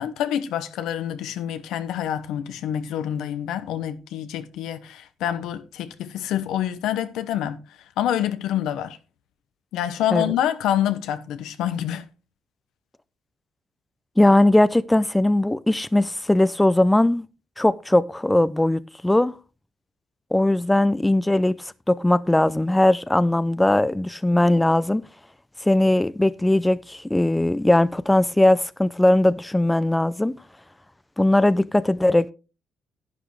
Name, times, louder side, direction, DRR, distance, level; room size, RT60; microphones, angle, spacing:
voice 1, 0.0-7.6 8.0-9.0 9.7-12.0, left 10 dB, 85° left, 1.0 m, -27 dB
voice 2, 14.2-17.2 17.6-19.3 20.3-21.6 21.9-25.0 25.6-30.4 31.2-32.3, left 1 dB, 10° left, 0.5 m, -19 dB
11.0 x 9.4 x 3.3 m
cardioid pair, 90°, 0 cm